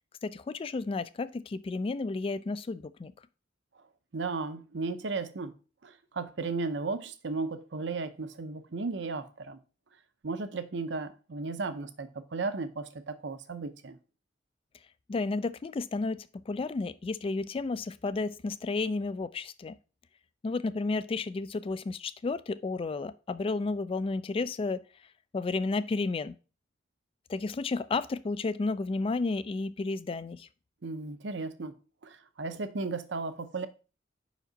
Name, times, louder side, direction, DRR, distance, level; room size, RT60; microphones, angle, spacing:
voice 1, 0.2-3.1 15.1-19.8 20.4-24.8 25.3-26.3 27.3-30.5, left 3 dB, 30° left, 0.3 m, -32 dB
voice 2, 4.1-5.5 5.8-9.6 10.2-14.0 30.8-31.7 32.0-33.7, right 3 dB, 70° right, 0.7 m, -35 dB
5.4 x 5.1 x 3.9 m
head